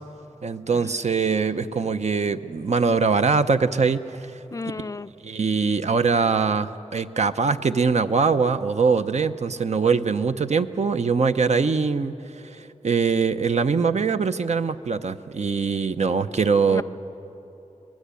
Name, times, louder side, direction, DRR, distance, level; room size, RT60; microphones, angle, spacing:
voice 1, 0.4-4.4 5.2-12.2 12.4-16.8, right 5 dB, 60° right, 10 dB, 0.7 m, -22 dB
voice 2, 4.5-5.1 16.7-16.8, left 3 dB, 25° left, 14 dB, 0.4 m, -34 dB
25.0 x 20.0 x 8.4 m, 2.9 s
wide cardioid pair, 115°, 13 cm